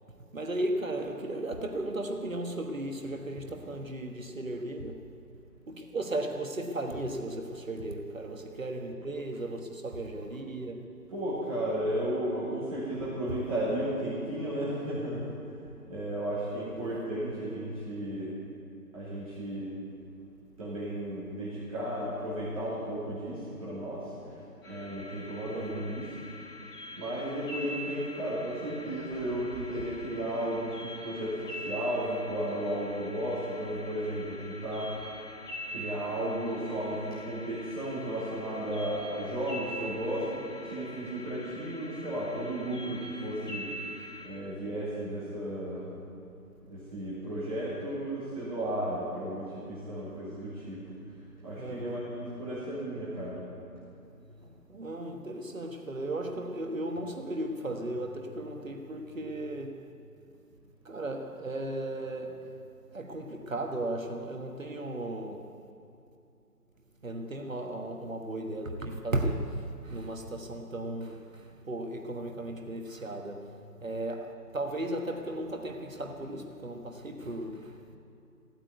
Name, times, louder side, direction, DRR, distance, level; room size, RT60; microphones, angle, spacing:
voice 1, 0.3-5.2 5.7-11.0 25.5-25.9 51.5-52.0 54.4-60.0 60.8-62.6 62.9-65.6 67.0-78.0, right 1 dB, 55° right, 1.4 m, -36 dB
voice 2, 11.1-18.3 18.9-19.7 20.6-24.1 24.6-26.1 26.9-35.0 35.7-40.4 40.6-43.7 44.2-45.9 46.7-50.8 51.4-53.4, right 1 dB, 20° right, 3.0 m, -34 dB
sound 1, 24.6-44.3, left 1 dB, 15° left, 2.7 m, -44 dB
16.5 x 8.8 x 9.5 m
figure-of-eight pair, 170°, 48 cm